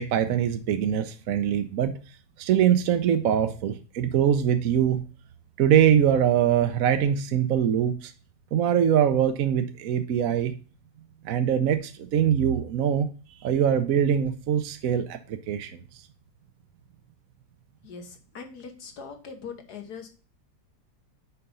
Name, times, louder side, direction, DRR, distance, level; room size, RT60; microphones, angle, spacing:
voice 1, 0.0-2.0 2.4-5.0 5.6-8.1 8.5-10.5 11.2-13.1 13.4-15.8, right 9 dB, 65° right, 8 dB, 1.0 m, -23 dB
voice 2, 17.8-20.1, left 5 dB, 70° left, 6 dB, 1.9 m, -41 dB
6.8 x 5.1 x 5.4 m, 0.37 s
omnidirectional pair, 1.7 m